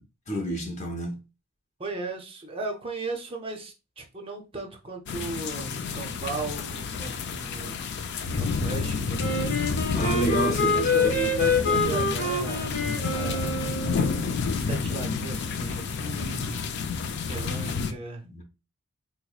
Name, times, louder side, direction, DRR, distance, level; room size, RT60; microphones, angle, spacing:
voice 1, 0.3-1.2 9.9-11.1 18.2-18.4, right 1 dB, 35° left, 0.8 m, -29 dB
voice 2, 1.8-9.6 10.5-13.5 14.6-16.8 17.2-18.2, right 3 dB, 25° right, 0.6 m, -36 dB
sound 1, 5.1-17.9, left 5 dB, 50° left, 0.4 m, -30 dB
Wind instrument woodwind instrument, 9.2-14.2, left 3 dB, 85° left, 1.5 m, -26 dB
3.8 x 3.0 x 2.3 m
head